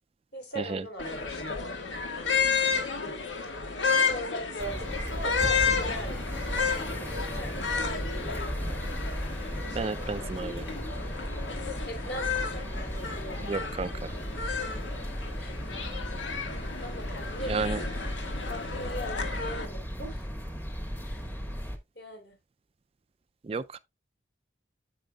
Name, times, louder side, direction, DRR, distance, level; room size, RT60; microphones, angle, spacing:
voice 1, 0.3-1.7 3.8-6.2 6.5-8.8 9.7-10.4 11.9-13.5 15.4-15.8 16.8-18.0 18.5-20.3 21.0-21.4 21.9-22.3, equal, 60° left, 3.9 m, -41 dB
sound 1, 1.0-19.7, left 5 dB, 90° left, 1.6 m, -32 dB
sound 2, 4.6-21.8, equal, 10° left, 1.0 m, -36 dB
voice 2, 9.8-10.6 13.4-13.9 17.5-17.8 23.4-23.8, right 4 dB, 30° right, 0.3 m, -32 dB
8.9 x 7.9 x 2.2 m
head